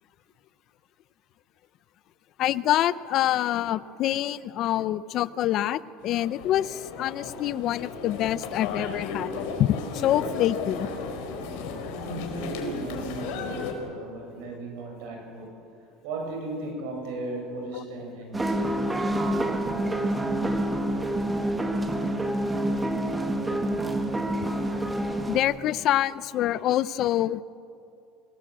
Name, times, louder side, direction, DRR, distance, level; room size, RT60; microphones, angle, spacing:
voice 1, 2.4-10.9 17.7-17.8 25.3-27.4, left 12 dB, 50° left, 17 dB, 0.6 m, -26 dB
sound 1, 6.0-13.7, left 4 dB, 70° left, 4.2 m, -35 dB
voice 2, 11.9-15.6 16.0-18.4, right 2 dB, 75° right, 2 dB, 7.2 m, -36 dB
sound 2, 18.3-25.4, right 1 dB, 10° right, 1.8 m, -27 dB
25.0 x 18.0 x 7.7 m, 2.5 s
supercardioid pair, 130°, 0 cm